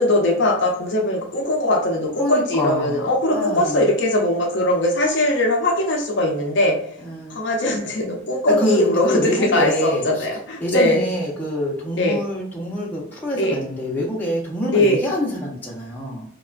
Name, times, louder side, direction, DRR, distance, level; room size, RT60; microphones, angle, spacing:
voice 1, 0.0-6.8 7.3-11.0 12.0-12.2 13.4-13.6 14.7-15.0, left 1 dB, 55° left, 1 dB, 0.5 m, -20 dB
voice 2, 2.2-3.9 7.0-7.4 8.5-10.3 10.6-16.2, equal, 10° left, -5 dB, 0.7 m, -25 dB
2.9 x 2.3 x 2.3 m, 0.66 s
head